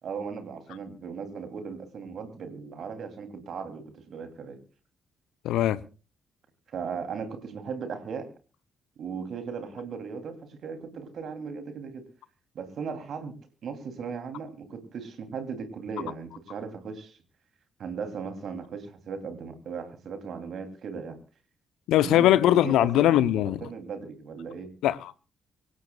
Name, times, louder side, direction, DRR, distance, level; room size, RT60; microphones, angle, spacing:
voice 1, 0.0-4.6 6.7-8.3 9.0-12.0 12.5-13.3 13.6-17.2 17.8-21.2 22.0-24.7, right 5 dB, 55° right, 3.2 m, -37 dB
voice 2, 5.4-5.8 21.9-23.6 24.8-25.3, left 13 dB, 65° left, 0.8 m, -21 dB
25.0 x 16.0 x 2.4 m
figure-of-eight pair, 40°, 0 cm